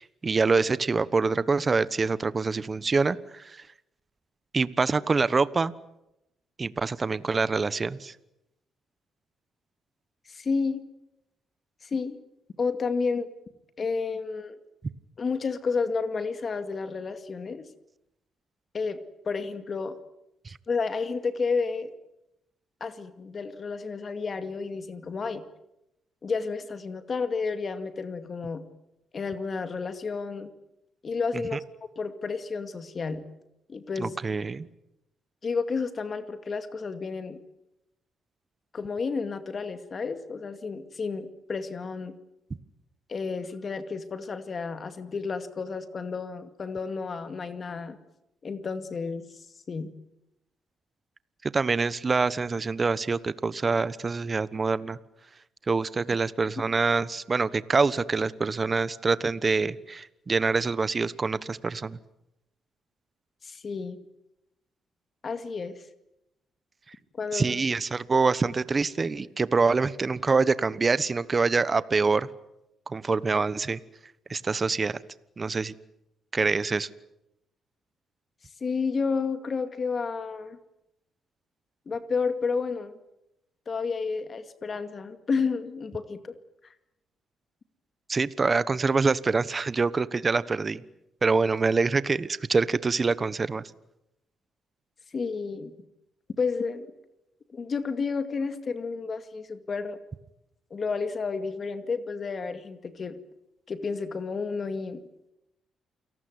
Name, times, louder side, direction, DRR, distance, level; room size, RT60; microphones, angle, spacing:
voice 1, 0.0-3.6 4.5-5.7 6.6-8.1 20.4-20.6 31.5-31.6 34.0-34.7 51.4-55.0 55.7-62.0 67.3-72.3 72.9-73.8 74.3-75.0 75.4-75.7 76.3-76.9 88.1-90.8 91.2-93.6, right 4 dB, 30° right, 17 dB, 1.1 m, -25 dB
voice 2, 10.3-10.8 11.8-12.2 12.6-13.3 13.8-14.6 15.2-17.6 18.7-19.0 19.2-20.0 20.7-21.9 22.8-25.4 26.2-28.6 29.1-30.5 31.0-31.6 32.0-33.2 33.7-34.2 35.4-37.4 38.7-42.1 43.1-48.0 48.4-49.9 63.4-64.0 65.2-65.8 67.1-67.6 78.6-80.6 81.9-83.0 83.7-86.3 95.1-95.7 96.4-96.9 97.5-100.0 100.7-103.2 103.7-105.0, left 4 dB, 40° left, 10 dB, 2.2 m, -31 dB
29.0 x 18.5 x 9.6 m, 0.88 s
cardioid pair, 90°, 0 cm